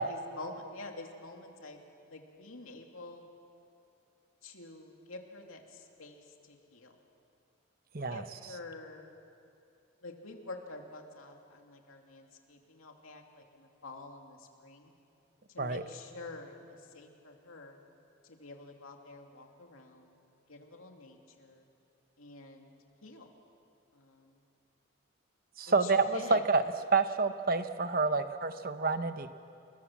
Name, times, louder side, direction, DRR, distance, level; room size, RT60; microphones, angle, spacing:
voice 1, 0.0-1.8 2.1-3.2 4.4-7.0 8.1-9.1 10.0-14.9 15.5-17.8 18.2-20.2 20.5-21.6 22.2-22.7 23.0-23.3 23.9-24.4 25.7-26.4, left 2 dB, 85° left, 2 dB, 2.7 m, -48 dB
voice 2, 7.9-8.3 15.6-15.8 25.6-26.6 26.9-29.3, right 4 dB, 45° right, 10 dB, 0.9 m, -28 dB
29.5 x 21.0 x 7.4 m, 2.7 s
head